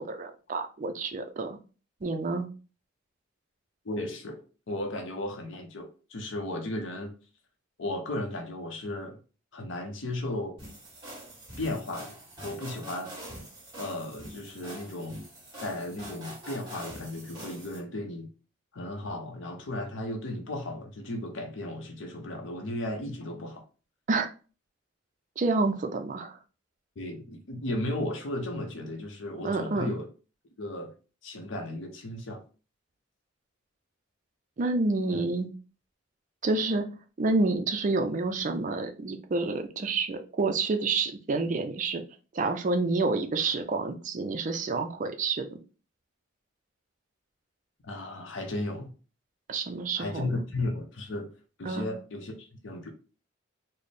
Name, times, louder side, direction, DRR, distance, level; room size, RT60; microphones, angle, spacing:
voice 1, 0.0-1.6 2.0-2.5 24.1-24.3 25.4-26.4 29.4-29.9 34.6-35.5 36.4-36.9 37.2-42.0 42.3-45.4 49.5-50.4 51.7-51.9, right 3 dB, 40° right, 0.4 m, -28 dB
voice 2, 3.8-4.4 4.7-7.1 7.8-9.2 9.5-10.6 11.6-12.1 12.4-13.1 13.8-15.2 15.6-18.3 18.7-23.6 27.0-30.1 30.6-30.9 31.2-32.4 35.1-35.2 47.8-48.9 50.0-51.3 51.6-52.9, left 1 dB, 65° left, 0.6 m, -35 dB
sound 1, 10.6-17.8, right 1 dB, 20° right, 1.4 m, -44 dB
4.1 x 2.0 x 3.3 m
head